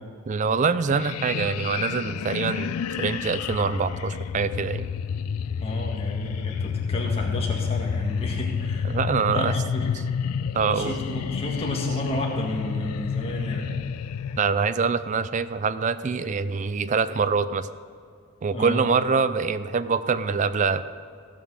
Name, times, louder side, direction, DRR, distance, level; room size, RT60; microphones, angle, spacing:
voice 1, 0.3-4.9 8.8-9.6 10.5-10.9 14.4-17.7 18.4-20.8, right 5 dB, 35° right, 14 dB, 0.3 m, -24 dB
sound 1, 0.9-14.4, left 6 dB, 90° left, 0.3 m, -29 dB
voice 2, 5.6-9.0 9.3-9.9 10.7-13.7 18.5-18.9, left 1 dB, 25° left, -1 dB, 1.8 m, -32 dB
16.0 x 6.1 x 6.3 m, 2.3 s
head